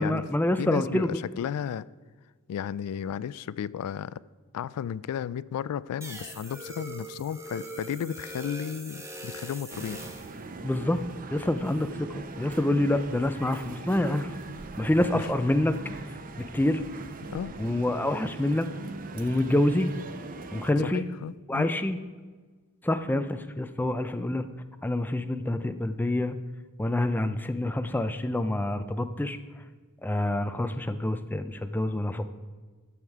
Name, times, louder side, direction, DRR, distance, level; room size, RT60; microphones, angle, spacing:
voice 1, 0.0-1.2 10.6-11.0 11.3-14.3 14.8-15.7 16.4-16.8 17.6-18.7 19.1-19.9 20.5-21.1 21.5-22.0 22.8-24.5 24.8-26.4 26.8-29.4 30.0-32.3, left 1 dB, 10° left, 10 dB, 0.4 m, -27 dB
voice 2, 0.6-1.9 2.5-4.2 4.5-10.0 15.1-15.2 17.2-17.5 20.8-21.7, left 8 dB, 90° left, 18 dB, 0.3 m, -33 dB
sound 1, 6.0-10.4, right 2 dB, 15° right, 1.0 m, -41 dB
sound 2, 9.7-20.7, right 3 dB, 40° right, 0.6 m, -41 dB
11.0 x 7.2 x 4.7 m, 1.4 s
head